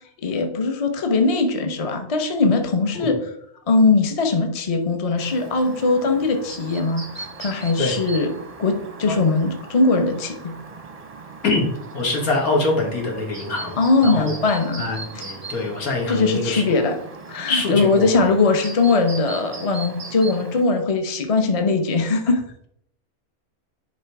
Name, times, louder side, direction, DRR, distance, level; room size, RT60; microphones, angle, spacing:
voice 1, 0.2-3.2 3.7-8.3 8.6-10.6 13.8-14.9 16.1-17.0 17.3-22.7, left 3 dB, 30° left, 5 dB, 0.8 m, -20 dB
Chirp tweet, 5.2-20.6, right 3 dB, 35° right, 0.7 m, -38 dB
voice 2, 11.9-14.4 14.8-16.8 17.5-18.2, left 3 dB, 75° left, 0 dB, 2.2 m, -24 dB
10.5 x 3.7 x 4.7 m, 0.71 s
omnidirectional pair, 1.5 m